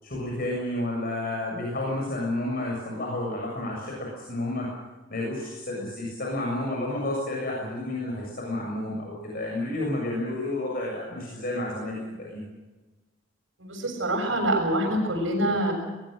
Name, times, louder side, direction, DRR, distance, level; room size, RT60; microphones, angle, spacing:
voice 1, 0.0-4.7 5.1-12.4, left 1 dB, 50° left, -2 dB, 7.0 m, -31 dB
voice 2, 13.6-15.7, right 1 dB, 85° right, 3 dB, 7.0 m, -25 dB
22.5 x 21.0 x 6.6 m, 1.2 s
head